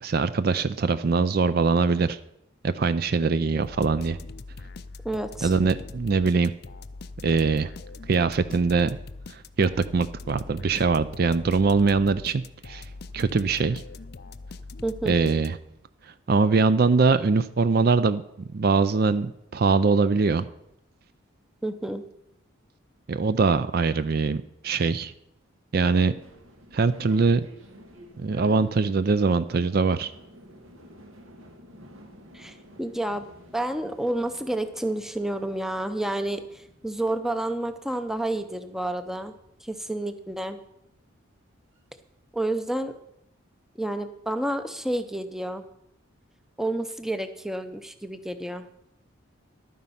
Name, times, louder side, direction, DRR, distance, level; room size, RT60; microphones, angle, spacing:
voice 1, 0.0-2.2 2.6-4.2 5.4-6.5 7.2-7.7 8.1-9.0 9.3-12.8 13.1-13.8 15.1-15.6 16.3-18.2 18.5-20.5 23.1-25.1 25.7-26.1 26.7-27.5 28.2-30.1, right 4 dB, 45° right, 14 dB, 0.4 m, -22 dB
sound 1, 3.6-15.8, left 3 dB, 50° left, 0.5 m, -42 dB
voice 2, 5.0-5.5 14.8-15.2 21.6-22.0 32.3-33.3 33.5-39.3 39.6-40.6 42.3-43.0 43.8-45.6 46.6-48.7, right 1 dB, ahead, 9 dB, 0.6 m, -30 dB
sound 2, 26.1-42.4, equal, 80° right, 1.8 m, -52 dB
11.5 x 9.4 x 5.6 m, 0.80 s
head